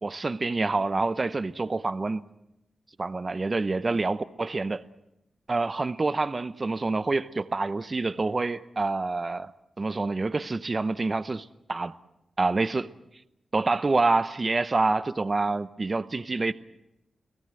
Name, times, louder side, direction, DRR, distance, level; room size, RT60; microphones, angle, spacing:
voice 1, 0.0-2.2 3.0-4.8 5.5-9.5 9.8-11.9 12.4-12.9 13.5-16.5, right 3 dB, 30° right, 0.8 m, -27 dB
29.5 x 18.5 x 7.8 m
wide cardioid pair, 120°, 0 cm